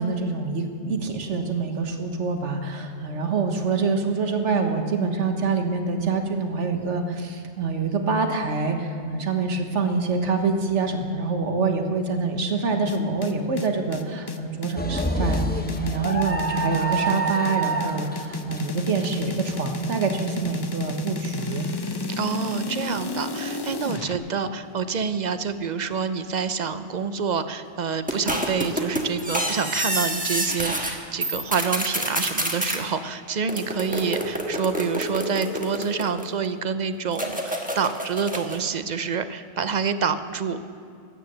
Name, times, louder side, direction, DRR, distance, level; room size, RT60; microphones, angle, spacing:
voice 1, 0.0-21.7, right 4 dB, 85° right, 5 dB, 1.6 m, -26 dB
sound 1, 12.9-24.2, left 3 dB, 30° left, 0.5 m, -32 dB
sound 2, 14.8-20.9 21.4-21.5 22.6-22.9, right 1 dB, 10° left, 0.9 m, -28 dB
voice 2, 22.2-40.6, right 6 dB, 50° right, 11 dB, 0.6 m, -27 dB
sound 3, 28.1-30.9 31.2-32.8 33.5-36.5 37.1-38.6, equal, 5° right, 1.3 m, -28 dB
13.5 x 9.6 x 7.8 m, 2.3 s
omnidirectional pair, 1.2 m